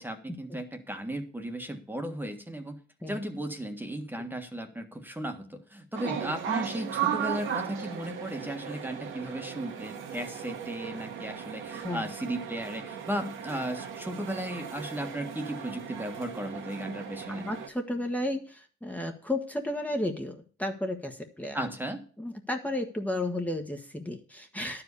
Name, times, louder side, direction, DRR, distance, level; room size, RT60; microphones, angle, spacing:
voice 1, 0.0-2.8 3.1-17.5 21.5-22.1, right 1 dB, 10° right, 6 dB, 1.5 m, -35 dB
sound 1, 5.9-17.7, right 9 dB, 80° right, 1.9 m, -36 dB
voice 2, 17.3-21.6 22.2-24.8, left 1 dB, 5° left, 4 dB, 1.4 m, -33 dB
11.5 x 5.0 x 8.3 m, 0.41 s
cardioid pair, 90°, 20 cm